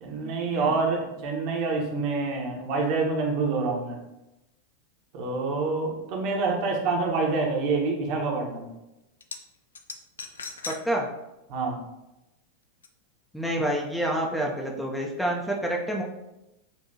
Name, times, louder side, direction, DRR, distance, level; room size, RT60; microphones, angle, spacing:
voice 1, 0.0-4.0 5.1-8.7 11.5-11.8, right 3 dB, 45° right, 0 dB, 1.0 m, -27 dB
sound 1, 9.2-9.4 9.7-10.8 11.2-11.3 12.8-12.9, left 4 dB, 70° left, 0.4 m, -37 dB
voice 2, 13.3-16.0, right 1 dB, ahead, -1 dB, 0.6 m, -28 dB
7.1 x 2.7 x 2.7 m, 0.94 s
figure-of-eight pair, 90°, 0 cm